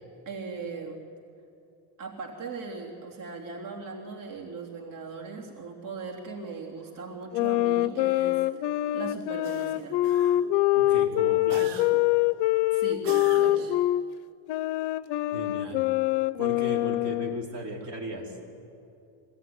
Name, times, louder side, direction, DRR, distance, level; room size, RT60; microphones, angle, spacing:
voice 1, 0.3-1.0 2.0-8.6 8.9-10.0 12.7-13.8, right 4 dB, 85° right, -1 dB, 3.5 m, -39 dB
sound 1, 7.3-14.0 14.5-17.5, left 15 dB, 65° left, 0.7 m, -25 dB
sound 2, 9.4-10.6 11.5-12.2 13.1-13.9, right 10 dB, 65° right, 0.9 m, -44 dB
voice 2, 10.7-11.9 15.3-15.8 16.4-18.3, right 1 dB, 40° right, -1 dB, 4.4 m, -36 dB
24.5 x 18.0 x 9.5 m, 2.6 s
cardioid pair, 145°, 43 cm